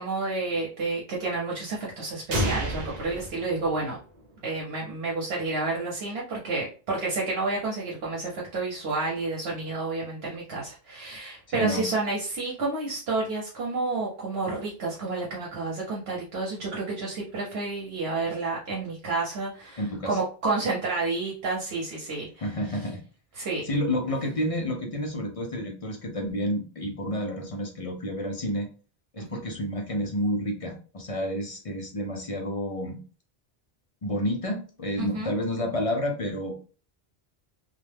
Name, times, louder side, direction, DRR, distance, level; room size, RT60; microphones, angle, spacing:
voice 1, 0.0-4.0 4.4-22.3 23.4-23.7 29.2-29.4 35.0-35.3, right 3 dB, 80° right, -4 dB, 0.9 m, -30 dB
sound 1, 2.3-4.2, right 1 dB, 50° right, 0.6 m, -30 dB
voice 2, 11.5-11.9 19.8-20.2 22.4-23.0 23.6-28.7 29.1-33.0 34.0-36.6, equal, 45° left, 2 dB, 0.5 m, -30 dB
2.3 x 2.1 x 3.2 m, 0.37 s
omnidirectional pair, 1.0 m